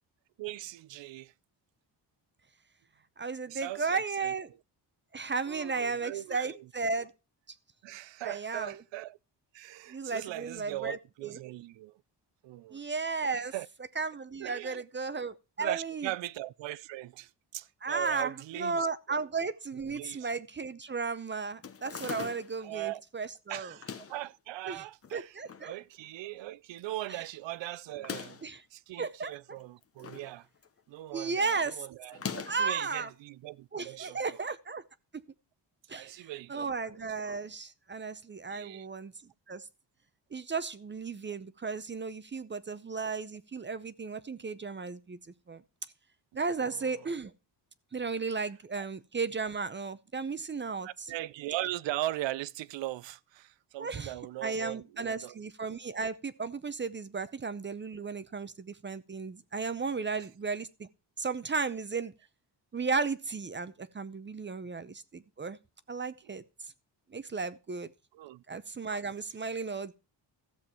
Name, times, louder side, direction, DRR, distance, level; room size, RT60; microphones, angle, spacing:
voice 1, 0.4-1.3 3.5-4.3 5.5-6.7 7.8-9.2 9.5-12.0 12.4-12.8 13.3-13.7 14.4-14.8 15.6-19.2 19.9-20.3 22.6-23.0 23.5-28.4 28.7-30.5 30.9-34.4 35.9-37.4 38.5-38.9 46.6-47.1 48.8-48.9 50.8-55.3 60.1-60.3 68.1-68.4, right 16 dB, 80° right, 0.6 m, -40 dB
voice 2, 3.2-4.5 5.1-7.1 8.2-8.7 9.9-11.4 12.7-13.5 14.0-16.1 17.8-23.7 24.7-24.8 25.1-25.7 28.4-28.6 29.0-29.3 31.1-31.9 32.5-33.1 33.7-34.8 35.1-35.2 35.9-39.1 39.5-39.6 40.3-45.2 45.5-45.6 46.3-47.3 47.9-50.9 53.8-54.1 54.4-60.9 61.2-62.1 62.7-65.6 65.9-66.4 67.1-67.9 68.5-69.9, right 4 dB, 25° right, 0.6 m, -34 dB
sound 1, 21.6-22.6 23.7-24.3 25.0-25.7 26.0-26.1 26.3-26.4 27.9-28.5 29.6-30.3 30.6-31.0 32.1-32.7, left 6 dB, 30° left, 0.9 m, -41 dB
14.0 x 7.3 x 4.4 m
cardioid pair, 105°, 44 cm